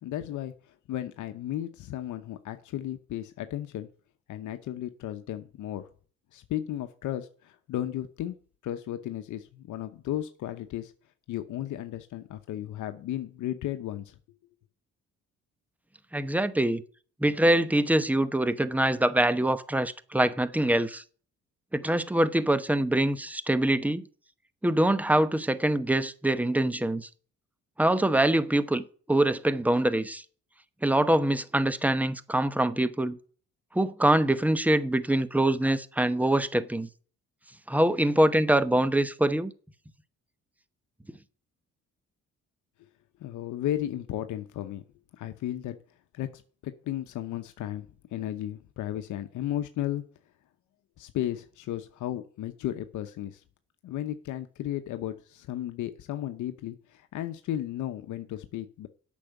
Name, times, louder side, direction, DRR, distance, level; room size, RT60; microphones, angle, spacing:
voice 1, 0.0-3.9 4.3-5.8 6.3-8.4 8.6-10.9 11.3-14.2 43.2-44.8 45.2-45.8 46.1-50.0 51.0-53.4 53.8-58.9, left 12 dB, 80° left, 0.9 m, -34 dB
voice 2, 16.1-16.8 17.2-21.0 21.7-24.0 24.6-27.1 27.8-30.2 30.8-33.2 33.7-36.9 37.7-39.5, right 1 dB, 5° right, 0.9 m, -24 dB
8.5 x 6.3 x 8.0 m
cardioid pair, 90°, 30 cm